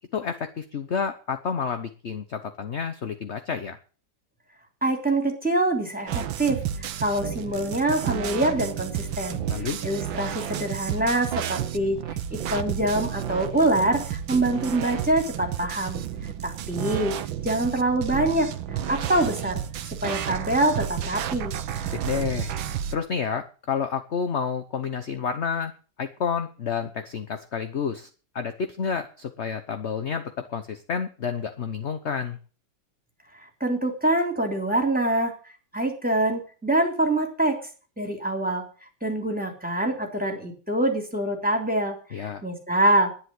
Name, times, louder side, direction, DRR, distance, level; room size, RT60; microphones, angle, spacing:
voice 1, 0.1-3.8 9.5-9.8 21.9-22.5 22.9-25.7 26.0-28.1 28.3-32.4 42.1-42.4, left 6 dB, 45° left, 9 dB, 1.0 m, -29 dB
voice 2, 4.8-6.6 7.0-9.4 9.8-16.0 16.4-17.1 17.4-19.6 20.0-21.5 33.6-35.3 35.7-37.6 38.0-38.6 39.0-43.1, right 1 dB, 5° right, 2 dB, 3.2 m, -25 dB
sound 1, 6.1-23.0, right 9 dB, 85° right, 1.7 m, -31 dB
11.0 x 10.0 x 7.7 m, 0.38 s
omnidirectional pair, 2.1 m